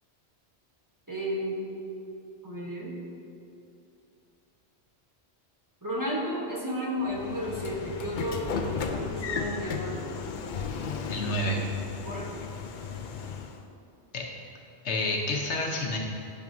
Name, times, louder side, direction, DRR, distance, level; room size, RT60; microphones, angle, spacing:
voice 1, 1.1-1.7 2.4-3.0 5.8-10.1 12.0-12.3, equal, 20° right, -6 dB, 1.2 m, -33 dB
Train / Sliding door, 7.1-13.6, left 6 dB, 60° left, 0.5 m, -35 dB
voice 2, 11.1-11.6 14.1-14.2 14.8-16.0, left 1 dB, 85° left, 0 dB, 1.2 m, -29 dB
10.5 x 6.2 x 2.7 m, 2.7 s
omnidirectional pair, 1.1 m